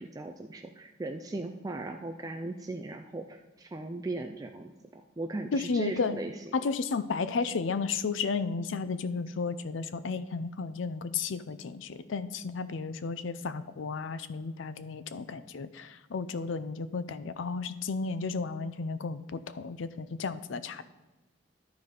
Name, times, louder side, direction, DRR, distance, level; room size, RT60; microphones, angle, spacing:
voice 1, 0.0-6.5, right 2 dB, 20° right, 5 dB, 0.3 m, -38 dB
voice 2, 5.5-6.2 6.5-20.8, left 4 dB, 80° left, 13 dB, 0.5 m, -33 dB
12.5 x 4.1 x 4.9 m, 1.2 s
head